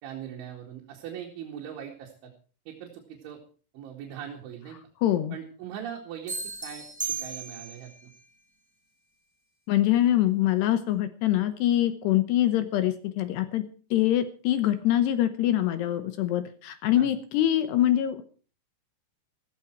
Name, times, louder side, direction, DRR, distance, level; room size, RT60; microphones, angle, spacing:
voice 1, 0.0-2.3 2.7-3.4 3.7-4.8 5.3-8.1 17.0-17.1, right 9 dB, 80° right, 0 dB, 4.5 m, -41 dB
voice 2, 5.0-5.4 9.7-13.6 13.9-18.2, left 12 dB, 75° left, 11 dB, 2.8 m, -24 dB
sound 1, 6.3-7.9, right 5 dB, 5° right, 2.3 m, -35 dB
15.0 x 15.0 x 4.6 m, 0.39 s
omnidirectional pair, 5.4 m